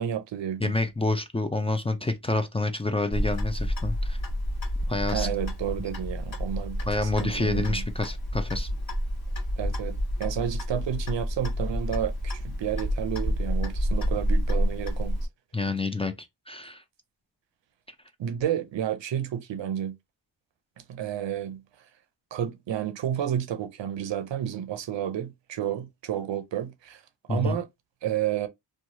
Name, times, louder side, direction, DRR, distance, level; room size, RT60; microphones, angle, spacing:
voice 1, 0.0-0.7 5.1-7.8 9.6-15.2 18.2-19.9 20.9-21.6 22.3-27.0 27.3-27.7 28.0-28.5, right 10 dB, 90° right, 0.6 m, -31 dB
voice 2, 0.6-4.2 4.9-5.3 6.9-8.7 15.5-16.8 27.3-27.6, left 2 dB, 15° left, 0.3 m, -28 dB
Clock, 3.1-15.3, equal, 55° left, 1.5 m, -29 dB
3.0 x 2.2 x 2.6 m
wide cardioid pair, 85°, 42 cm